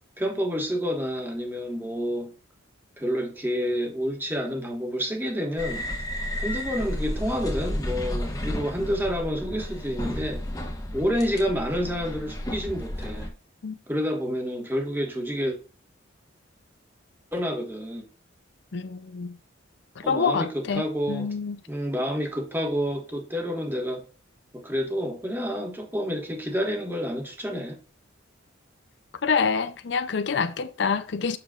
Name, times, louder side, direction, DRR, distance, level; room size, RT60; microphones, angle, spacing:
voice 1, 0.2-2.3 3.0-5.8 6.4-10.4 10.9-13.3 13.9-15.6 17.3-18.0 20.0-21.3 21.7-24.0 24.5-27.8, equal, 10° right, 1.4 m, -29 dB
sound 1, 5.6-13.3, equal, 20° left, 1.2 m, -32 dB
voice 2, 18.7-19.4 20.0-21.6 29.2-31.4, left 5 dB, 60° left, 0.5 m, -27 dB
7.5 x 6.8 x 2.4 m
head